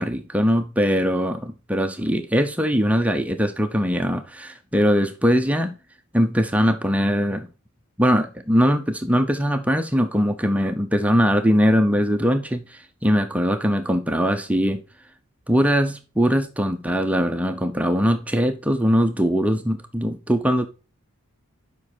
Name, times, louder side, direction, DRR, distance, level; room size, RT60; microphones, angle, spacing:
voice 1, 0.0-5.7 6.1-7.5 8.0-14.8 15.5-20.7, equal, 5° right, 0.6 m, -21 dB
7.2 x 5.3 x 4.3 m
head